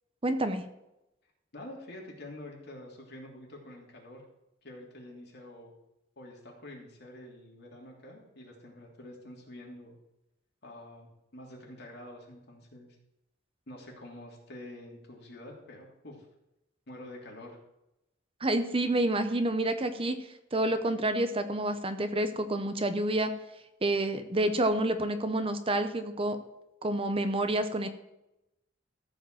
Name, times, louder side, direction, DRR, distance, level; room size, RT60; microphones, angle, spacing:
voice 1, 0.2-0.6 18.4-23.3 23.8-26.4 26.8-27.9, right 1 dB, 30° right, 9 dB, 0.8 m, -28 dB
voice 2, 1.5-4.2 4.6-5.7 6.2-10.0 10.6-13.0 13.7-16.3 16.9-17.6, left 1 dB, 60° left, -1 dB, 3.1 m, -47 dB
14.5 x 5.0 x 7.6 m, 0.90 s
head